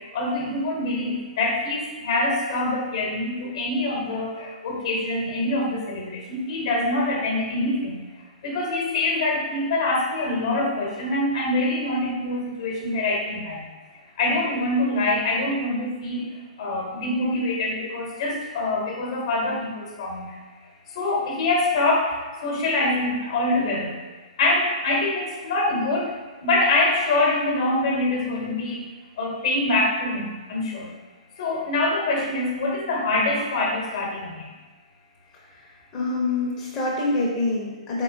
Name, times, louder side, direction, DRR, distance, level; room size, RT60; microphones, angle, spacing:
voice 1, 0.0-8.1 8.4-13.7 14.2-20.4 20.9-24.0 24.4-30.9 31.4-34.5, left 2 dB, 50° left, -1 dB, 1.0 m, -25 dB
voice 2, 35.9-38.0, left 2 dB, 25° left, -5 dB, 0.7 m, -25 dB
4.3 x 3.7 x 2.5 m, 1.3 s
figure-of-eight pair, 120°, 4 cm